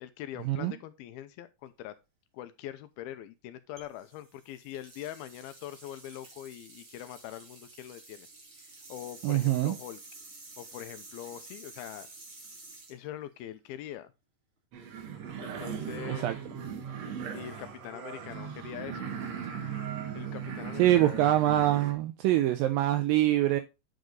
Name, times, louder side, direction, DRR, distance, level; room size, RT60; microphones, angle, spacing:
voice 1, 0.0-1.9 2.3-8.3 8.9-10.0 10.6-12.1 12.9-14.1 15.4-16.3 17.3-19.0 20.1-21.3, left 12 dB, 85° left, 2.6 m, -43 dB
sound 1, 3.8-13.9, right 3 dB, 40° right, 2.4 m, -51 dB
voice 2, 9.2-9.7 16.1-16.4 20.8-23.6, right 13 dB, 80° right, 2.2 m, -24 dB
sound 2, 14.7-21.9, right 7 dB, 60° right, 1.8 m, -38 dB
9.1 x 5.2 x 3.9 m
omnidirectional pair, 4.4 m